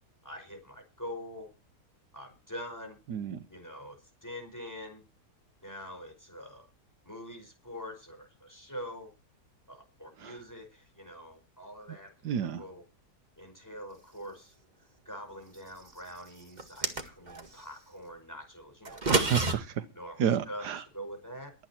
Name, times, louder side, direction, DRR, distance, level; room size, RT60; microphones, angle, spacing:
voice 1, 0.2-1.5 2.1-3.0 3.5-5.0 5.6-6.7 7.0-9.1 9.7-12.8 13.4-14.5 15.1-19.1 19.9-21.5, equal, 10° left, 4 dB, 5.3 m, -44 dB
voice 2, 3.1-3.4 10.2-10.3 12.2-12.6 19.1-19.8 20.2-20.8, right 8 dB, 85° right, 11 dB, 1.5 m, -30 dB
sound 1, 16.6-17.5 18.8-19.5, right 2 dB, 25° right, 1.9 m, -28 dB
22.0 x 9.1 x 4.4 m, 0.30 s
omnidirectional pair, 1.7 m